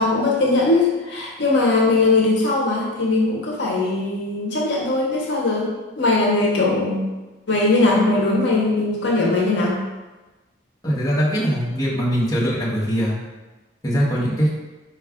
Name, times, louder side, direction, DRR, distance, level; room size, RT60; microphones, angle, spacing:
voice 1, 0.0-5.7 6.0-7.0 7.5-9.8, left 2 dB, 60° left, -3 dB, 0.7 m, -20 dB
voice 2, 10.8-13.2 13.8-14.5, equal, 20° left, -7 dB, 0.9 m, -21 dB
4.7 x 2.3 x 3.6 m, 1.2 s
head